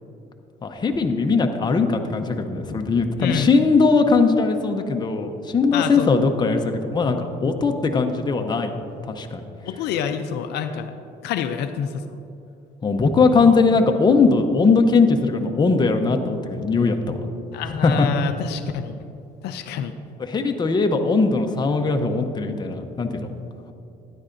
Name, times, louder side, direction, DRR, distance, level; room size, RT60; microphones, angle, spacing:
voice 1, 0.6-8.7 9.0-9.4 12.8-17.2 17.8-18.1 20.2-23.3, left 4 dB, 25° left, 5 dB, 0.7 m, -20 dB
voice 2, 3.2-3.5 5.7-6.3 9.6-10.9 11.2-12.2 17.5-19.0 19.4-20.0, left 8 dB, 75° left, 8 dB, 0.5 m, -27 dB
12.5 x 9.9 x 2.6 m, 2.7 s
cardioid pair, 110°, 17 cm